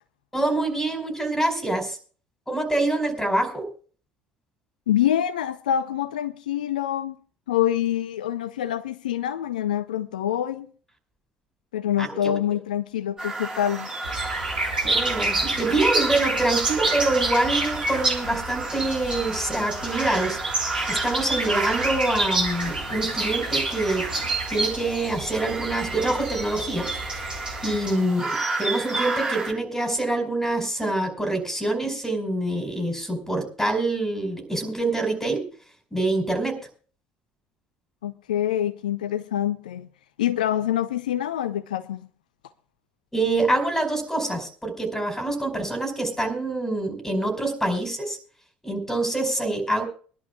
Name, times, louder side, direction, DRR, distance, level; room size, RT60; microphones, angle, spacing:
voice 1, 0.3-2.0 2.5-3.7 12.0-12.3 14.8-20.4 20.9-24.1 24.5-26.9 27.6-35.5 35.9-36.6 43.1-48.2 48.6-49.8, right 2 dB, 5° left, 5.0 m, -25 dB
voice 2, 4.9-7.1 7.5-10.7 11.7-13.9 27.7-28.0 38.0-39.9 40.2-42.1, left 11 dB, 75° left, 0.5 m, -26 dB
sound 1, 13.2-29.5, right 3 dB, 20° right, 7.5 m, -32 dB
sound 2, 14.0-27.9, right 2 dB, 85° right, 2.2 m, -29 dB
24.0 x 11.5 x 2.3 m
figure-of-eight pair, 60°, 5 cm